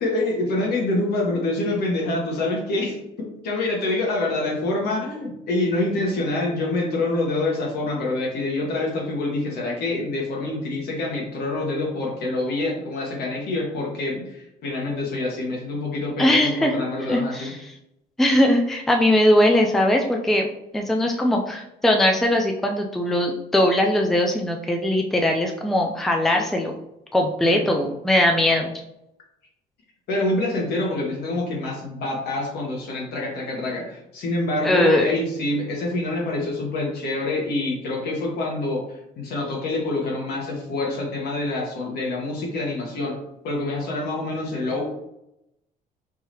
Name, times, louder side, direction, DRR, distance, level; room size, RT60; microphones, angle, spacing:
voice 1, 0.0-17.5 27.4-27.6 30.1-38.8 39.2-43.1 43.4-44.8, left 2 dB, 70° left, -2 dB, 1.4 m, -26 dB
voice 2, 16.2-16.8 17.1-17.6 18.2-20.5 20.7-26.8 27.1-28.7 34.6-35.1, left 1 dB, ahead, 2 dB, 0.4 m, -20 dB
4.8 x 2.8 x 3.0 m, 0.85 s
cardioid pair, 110°, 17 cm